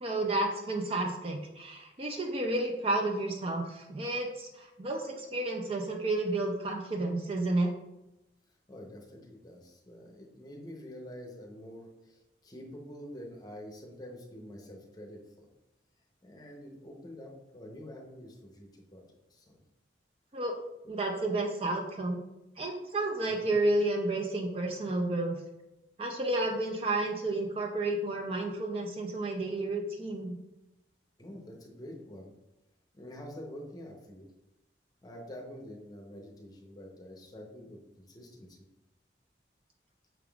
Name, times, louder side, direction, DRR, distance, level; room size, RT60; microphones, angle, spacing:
voice 1, 0.0-7.7 20.3-20.5 20.9-22.2 22.6-25.4 26.0-30.4, right 2 dB, 30° right, 2 dB, 0.4 m, -31 dB
voice 2, 8.7-15.5 16.2-19.6 23.3-23.5 31.2-32.3 32.9-34.3 35.0-38.6, equal, 20° left, 0 dB, 0.7 m, -47 dB
5.8 x 3.5 x 2.3 m, 0.95 s
head